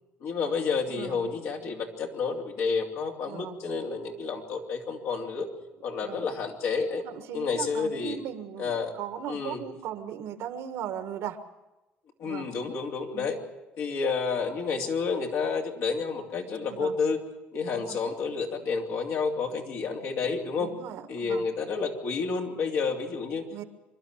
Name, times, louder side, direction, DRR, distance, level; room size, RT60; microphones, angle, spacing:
voice 1, 0.2-5.5 5.8-7.0 7.3-8.2 8.6-8.9 9.3-9.6 12.2-13.4 13.8-17.2 17.5-20.7 21.1-23.5, left 5 dB, 75° left, 1 dB, 3.1 m, -30 dB
voice 2, 0.9-1.3 3.2-3.5 6.0-6.3 7.0-8.7 9.0-11.4 12.2-12.5 13.1-13.4 16.7-16.9 17.7-18.0 20.6-21.4 23.5-23.6, right 10 dB, 80° right, 9 dB, 1.5 m, -38 dB
25.5 x 12.0 x 8.9 m, 1.0 s
cardioid pair, 90°, 5 cm